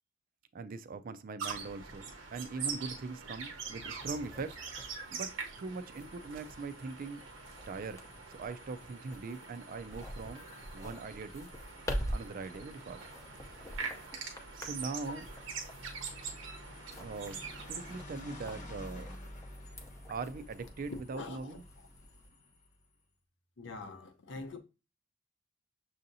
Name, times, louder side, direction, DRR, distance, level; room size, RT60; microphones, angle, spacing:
voice 1, 0.5-4.6 5.1-7.2 7.7-10.4 10.7-11.5 12.1-13.1 13.4-13.8 14.5-15.3 17.0-19.1 20.1-21.6, right 4 dB, 45° right, 0.4 m, -41 dB
sound 1, 1.4-18.0, right 5 dB, 85° right, 0.8 m, -44 dB
sound 2, 3.2-22.3, equal, 15° left, 0.6 m, -46 dB
sound 3, 4.3-22.9, left 1 dB, 40° left, 0.9 m, -53 dB
voice 2, 21.1-21.6 23.6-24.6, left 3 dB, 65° left, 0.7 m, -44 dB
6.3 x 2.7 x 2.6 m
head